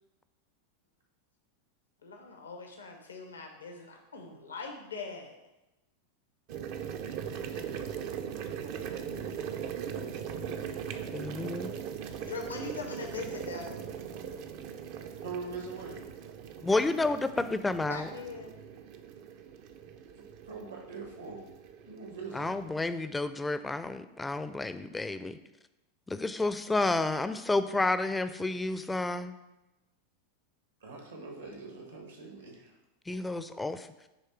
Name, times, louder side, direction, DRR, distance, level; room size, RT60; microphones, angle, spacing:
voice 1, 2.0-5.3 12.2-13.8 17.8-18.5, left 4 dB, 85° left, 3 dB, 0.8 m, -41 dB
sound 1, 6.5-22.9, right 8 dB, 55° right, 0.5 m, -40 dB
voice 2, 7.5-7.9 12.6-12.8 15.2-16.1 20.4-21.5 21.9-22.6 30.8-32.8, right 4 dB, 80° right, 1 dB, 1.8 m, -43 dB
voice 3, 11.1-11.7 16.6-18.1 22.3-25.4 26.1-29.4 33.1-33.9, left 2 dB, 10° left, 12 dB, 0.4 m, -30 dB
9.4 x 3.2 x 4.5 m, 0.98 s
figure-of-eight pair, 90°, 0 cm